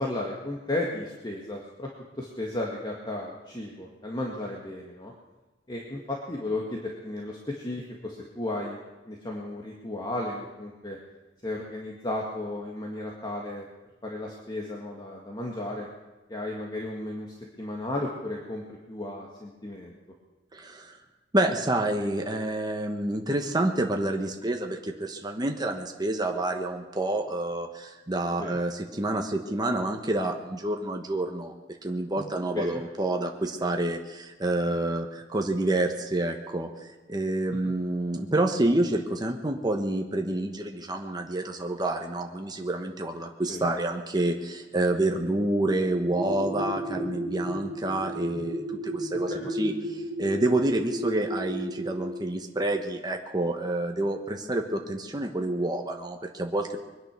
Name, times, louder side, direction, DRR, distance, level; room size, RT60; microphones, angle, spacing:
voice 1, 0.0-1.9 2.2-5.1 5.7-8.8 9.1-11.0 11.4-13.7 14.0-15.9 16.3-20.0 28.4-28.6 32.5-32.8 37.5-37.7 43.5-43.7 49.3-49.5, left 1 dB, 25° left, -2 dB, 1.9 m, -34 dB
voice 2, 20.5-21.0 21.3-31.5 31.8-36.7 37.1-56.8, right 1 dB, 20° right, 3 dB, 1.2 m, -28 dB
sound 1, 46.0-52.3, right 1 dB, 55° left, 3.9 m, -33 dB
22.5 x 10.0 x 6.2 m, 1.2 s
head